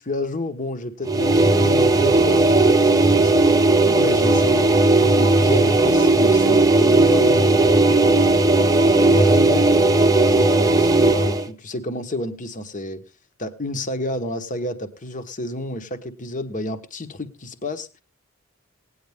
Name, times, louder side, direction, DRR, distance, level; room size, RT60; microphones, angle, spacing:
voice 1, 0.0-8.3 8.9-9.7 10.0-13.0 13.4-18.0, left 1 dB, 35° left, 9 dB, 1.2 m, -30 dB
sound 1, 1.0-11.5, right 2 dB, 15° right, 0.8 m, -16 dB
18.0 x 9.7 x 3.5 m, 0.30 s
head